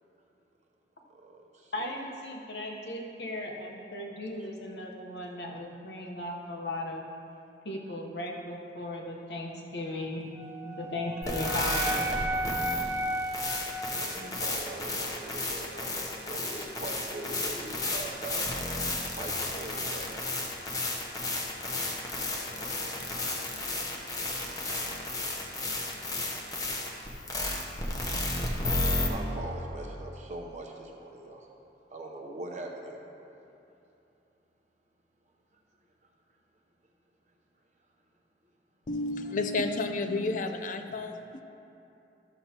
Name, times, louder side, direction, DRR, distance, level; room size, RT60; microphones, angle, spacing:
voice 1, 1.1-1.7 13.1-13.3 13.9-18.5 19.1-20.1 22.4-23.0 23.3-23.4 29.1-31.5 31.9-33.0, right 2 dB, 40° right, 1 dB, 0.8 m, -42 dB
voice 2, 1.7-7.1 7.6-10.2 10.6-12.1, left 1 dB, 75° left, 0 dB, 1.0 m, -37 dB
Wind instrument woodwind instrument, 10.4-14.6, right 1 dB, 15° right, 0.4 m, -34 dB
sound 1, 11.2-29.1, left 2 dB, 20° left, 0.8 m, -33 dB
voice 3, 38.9-41.4, left 3 dB, 45° left, 7 dB, 0.5 m, -31 dB
13.0 x 7.1 x 2.9 m, 2.8 s
head